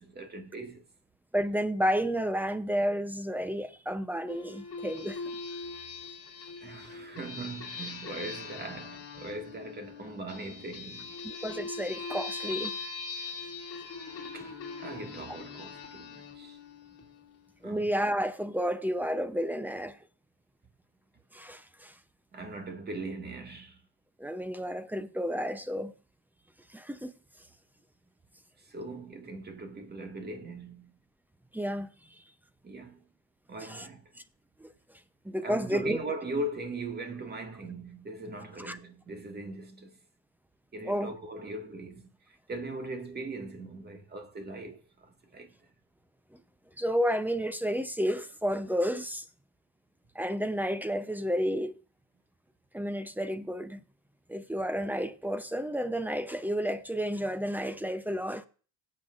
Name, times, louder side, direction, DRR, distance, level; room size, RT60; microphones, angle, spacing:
voice 1, 0.2-0.8 6.6-11.1 14.3-14.5 14.8-16.6 17.6-17.9 22.3-23.8 28.6-31.0 32.6-33.0 33.5-34.1 35.4-40.0 40.7-45.5, right 2 dB, 20° right, 2.0 m, -40 dB
voice 2, 1.3-5.2 11.2-12.8 15.3-15.4 17.6-20.0 21.3-21.9 24.2-25.9 26.7-27.1 31.5-32.2 33.6-33.9 34.6-34.7 35.2-36.0 38.6-38.8 40.8-41.1 46.3-46.4 46.8-49.3 50.1-51.8 52.7-53.8 54.3-58.5, equal, 5° right, 0.7 m, -31 dB
sound 1, 4.3-17.5, left 4 dB, 30° left, 2.9 m, -41 dB
17.5 x 7.7 x 2.5 m
supercardioid pair, 105°, 44 cm